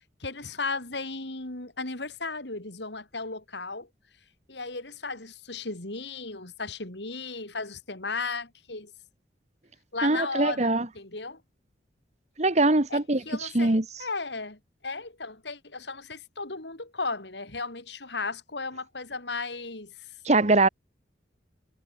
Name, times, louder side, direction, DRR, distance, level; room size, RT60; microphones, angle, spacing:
voice 1, 0.2-3.9 4.5-8.9 9.9-11.4 12.9-13.0 13.3-19.9, left 3 dB, 70° left, 3.8 m, -35 dB
voice 2, 10.0-10.9 12.4-13.8 20.2-20.7, right 2 dB, 40° right, 1.6 m, -22 dB
head